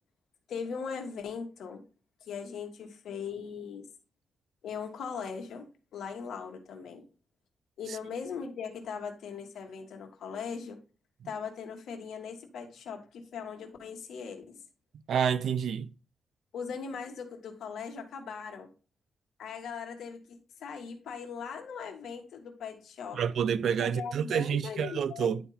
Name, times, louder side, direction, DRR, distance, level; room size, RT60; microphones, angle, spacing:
voice 1, 0.5-1.8 2.3-3.8 4.6-5.7 5.9-7.0 7.8-10.8 11.2-14.6 16.5-18.7 19.4-20.2 20.6-23.2 23.8-25.3, left 6 dB, 85° left, 1.6 m, -39 dB
voice 2, 15.1-15.9 23.1-25.4, right 7 dB, 75° right, 0.4 m, -28 dB
10.5 x 3.5 x 4.2 m
cardioid pair, 105°, 0 cm